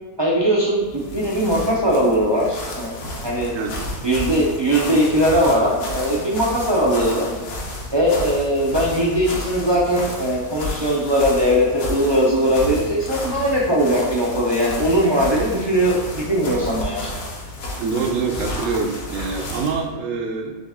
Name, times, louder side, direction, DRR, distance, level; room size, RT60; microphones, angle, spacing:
voice 1, 0.2-3.5 4.0-7.3 7.9-17.1, equal, 45° right, -5 dB, 0.3 m, -20 dB
sound 1, 0.7-19.8, left 1 dB, 80° left, 1.4 m, -31 dB
voice 2, 17.8-20.5, right 4 dB, 65° right, 2 dB, 0.9 m, -25 dB
4.0 x 3.5 x 3.5 m, 1.3 s
omnidirectional pair, 1.6 m